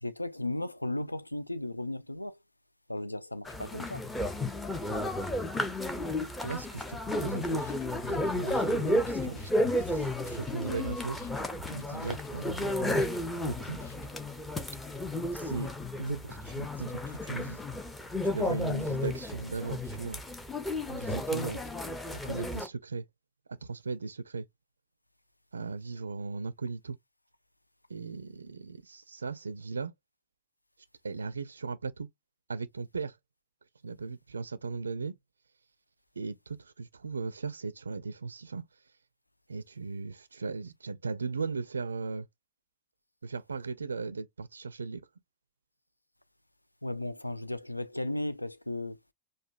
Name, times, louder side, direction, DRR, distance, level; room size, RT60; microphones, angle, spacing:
voice 1, 0.0-2.3 2.9-4.0 46.8-49.0, left 1 dB, 85° left, 0.3 m, -35 dB
sound 1, 3.4-22.7, left 1 dB, 10° left, 0.8 m, -33 dB
voice 2, 6.4-7.6 8.0-11.2 11.7-13.0 13.4-13.8 15.3-15.7 16.0-17.6 18.2-20.2 20.9-21.6 22.2-23.0 23.5-24.5 25.5-27.0 27.9-29.9 31.0-32.1 32.5-33.2 33.8-35.2 36.2-38.6 39.5-42.3 43.2-45.0, right 4 dB, 75° right, 0.4 m, -37 dB
sound 2, 7.1-14.2, left 3 dB, 65° left, 1.5 m, -49 dB
4.9 x 2.2 x 2.4 m
figure-of-eight pair, 90°, 0 cm